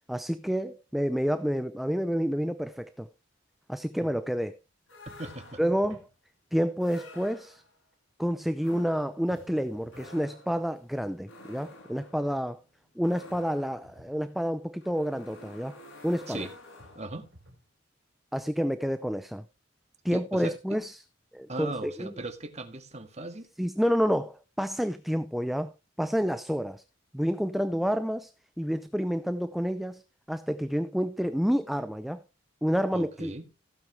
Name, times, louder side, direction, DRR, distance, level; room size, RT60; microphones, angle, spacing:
voice 1, 0.1-3.1 3.7-4.6 5.6-6.1 6.5-7.6 8.2-12.6 13.0-15.8 16.0-16.5 18.3-19.4 20.0-21.0 21.3-22.1 23.6-25.7 26.0-26.8 27.1-28.3 28.6-30.0 30.3-32.2 32.6-33.3, equal, ahead, 0.5 m, -29 dB
sound 1, 4.9-6.0 6.8-7.8 8.6-17.3, left 2 dB, 85° left, 5.9 m, -51 dB
voice 2, 5.1-5.6 16.3-16.6 17.0-17.3 20.1-20.8 21.5-23.5 32.9-33.5, right 2 dB, 35° right, 1.9 m, -38 dB
sound 2, 5.2-6.1 9.3-10.2 13.3-14.2 16.8-17.7, equal, 70° right, 3.7 m, -55 dB
15.5 x 8.8 x 3.3 m
head